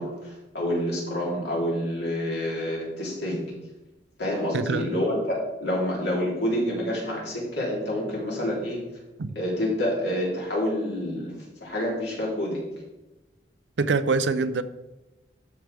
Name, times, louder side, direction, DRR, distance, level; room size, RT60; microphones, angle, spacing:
voice 1, 0.0-3.5 4.2-8.8 9.3-12.7, left 1 dB, 65° left, -4 dB, 3.3 m, -28 dB
voice 2, 4.5-4.9 9.2-9.3 13.8-14.6, right 4 dB, 80° right, 13 dB, 0.5 m, -24 dB
12.5 x 6.3 x 3.4 m, 1.0 s
head